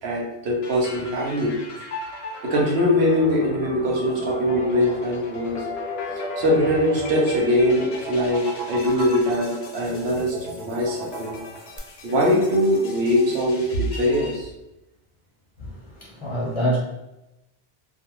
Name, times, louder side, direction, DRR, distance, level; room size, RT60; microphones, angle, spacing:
voice 1, 0.0-1.5 2.4-5.6 6.4-10.3 10.6-11.4 12.0-14.5, equal, 85° right, -2 dB, 1.0 m, -22 dB
sound 1, 0.6-14.4, left 3 dB, 80° left, 0.8 m, -38 dB
sound 2, 3.4-11.8, right 2 dB, 50° right, 0.5 m, -36 dB
voice 2, 15.6-16.8, right 1 dB, 35° left, -5 dB, 0.6 m, -26 dB
2.5 x 2.3 x 2.8 m, 0.94 s
omnidirectional pair, 1.0 m